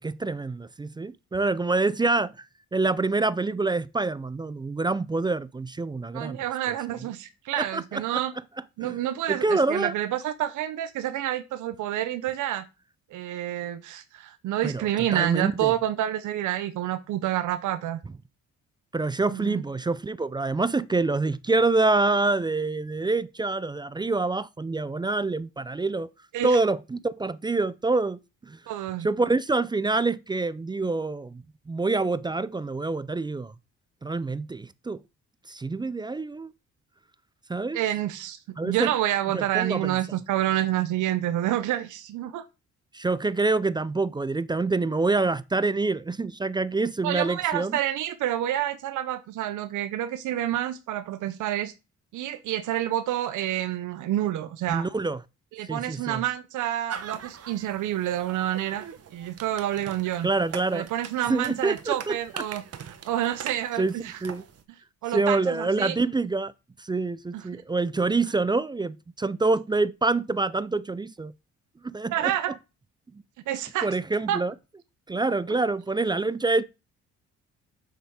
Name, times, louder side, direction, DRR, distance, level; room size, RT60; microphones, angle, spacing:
voice 1, 0.0-2.3 2.7-6.4 7.6-8.0 8.8-8.9 9.3-9.9 14.6-15.7 18.9-26.1 26.4-28.6 29.0-33.5 34.0-35.0 35.5-36.5 37.5-37.8 38.6-38.9 39.3-40.0 42.9-47.8 54.7-55.2 55.7-56.2 60.2-60.9 61.3-62.4 63.8-63.9 64.2-64.4 65.1-66.5 66.8-71.3 71.8-72.3 73.8-74.5 75.1-76.6, right 3 dB, 15° right, 0.4 m, -26 dB
voice 2, 6.1-8.3 8.8-12.6 13.1-18.0 19.3-19.6 26.3-26.6 28.7-29.1 37.7-38.4 38.6-42.4 47.0-51.7 52.1-54.9 55.6-58.9 59.1-60.3 60.7-64.2 65.0-66.0 67.3-67.4 72.1-72.6 73.5-73.9 74.3-74.4 75.5-75.6, right 12 dB, 80° right, 0.7 m, -28 dB
sound 1, 56.9-64.6, right 8 dB, 55° right, 1.2 m, -42 dB
7.0 x 5.9 x 4.7 m
cardioid pair, 90°, 30 cm